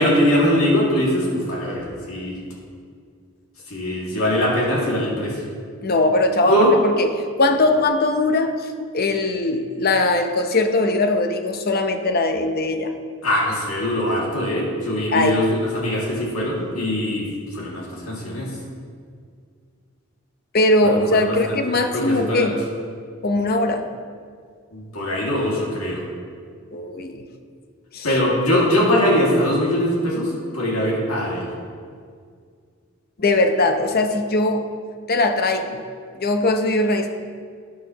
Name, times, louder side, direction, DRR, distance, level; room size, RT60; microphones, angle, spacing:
voice 1, 0.0-2.4 3.7-5.4 6.4-6.7 13.2-18.5 20.8-22.6 24.7-26.1 28.0-31.5, equal, 85° left, -4 dB, 2.3 m, -22 dB
voice 2, 5.8-7.1 7.4-8.7 8.9-12.9 15.1-15.4 20.5-22.5 23.2-23.9 26.7-27.2 27.9-28.1 33.2-34.7 35.1-35.8 36.1-37.1, left 2 dB, 45° left, 6 dB, 0.7 m, -20 dB
12.5 x 9.4 x 3.0 m, 2.1 s
head